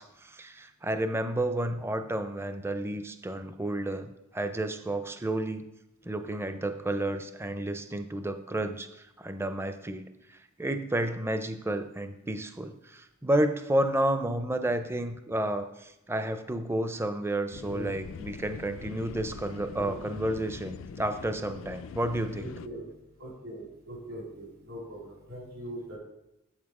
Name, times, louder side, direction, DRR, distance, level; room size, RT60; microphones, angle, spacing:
voice 1, 0.0-5.6 6.0-10.0 10.3-22.5, right 1 dB, 10° right, 9 dB, 0.5 m, -31 dB
sound 1, 17.5-22.7, left 6 dB, 70° left, 0.4 m, -43 dB
voice 2, 17.6-18.3 19.8-19.9 22.4-22.9 23.2-26.0, equal, 75° right, -3 dB, 3.7 m, -41 dB
8.0 x 7.3 x 4.8 m, 0.87 s
head